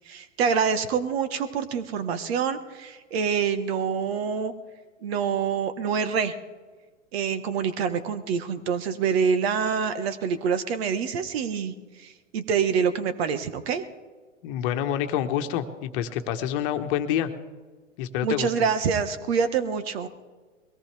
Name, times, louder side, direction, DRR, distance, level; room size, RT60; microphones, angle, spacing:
voice 1, 0.1-4.5 5.0-6.3 7.1-13.8 18.2-20.1, right 6 dB, 50° right, 11 dB, 1.4 m, -26 dB
voice 2, 14.4-17.3 18.0-18.5, left 10 dB, 45° left, 7 dB, 1.4 m, -27 dB
22.5 x 17.5 x 3.4 m, 1.4 s
hypercardioid pair, 105°, 38 cm